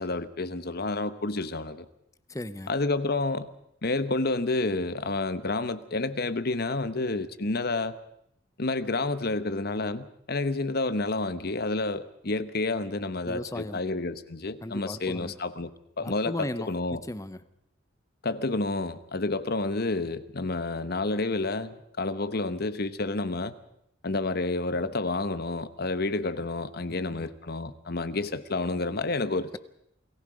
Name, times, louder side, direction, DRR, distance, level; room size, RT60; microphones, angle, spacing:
voice 1, 0.0-1.9 2.7-3.5 3.8-7.9 8.6-15.7 16.0-17.0 18.2-23.5 24.0-29.6, left 2 dB, 55° left, 13 dB, 1.1 m, -29 dB
voice 2, 2.3-2.7 13.3-13.8 14.6-15.3 16.0-17.5 27.1-27.3, left 1 dB, 15° left, 14 dB, 0.8 m, -36 dB
28.5 x 19.5 x 5.0 m, 0.74 s
head